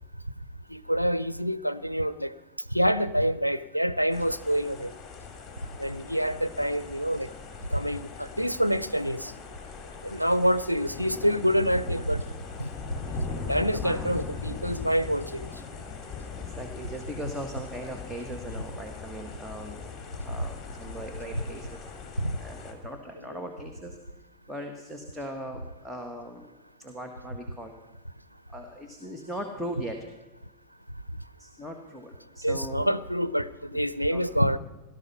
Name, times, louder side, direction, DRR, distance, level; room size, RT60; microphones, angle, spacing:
voice 1, 0.7-2.3 2.7-4.9 5.8-7.3 7.7-9.3 10.0-12.2 12.6-12.7 13.5-15.5 22.2-22.3 32.4-34.6, equal, 90° left, 0.5 m, -26 dB
sound 1, 4.1-22.7, left 5 dB, 20° left, 2.9 m, -40 dB
voice 2, 16.5-19.9 20.2-21.9 22.4-24.0 24.5-26.4 26.8-27.7 28.5-30.0 31.4-32.9 33.7-33.8 34.1-34.2, right 1 dB, 5° right, 1.5 m, -39 dB
18.0 x 12.5 x 5.7 m
figure-of-eight pair, 90°, 0 cm